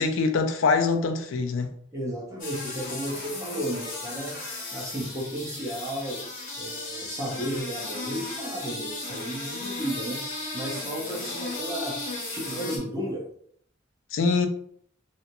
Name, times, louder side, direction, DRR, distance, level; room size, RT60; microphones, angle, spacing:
voice 1, 0.0-1.7 14.1-14.5, left 4 dB, 75° left, 0.4 m, -24 dB
voice 2, 1.9-4.4 4.7-6.2 6.6-10.2 10.5-12.0 12.3-13.3, equal, 15° right, 0.7 m, -33 dB
sound 1, 2.4-12.8, left 2 dB, 45° left, 0.7 m, -35 dB
2.4 x 2.0 x 2.8 m
head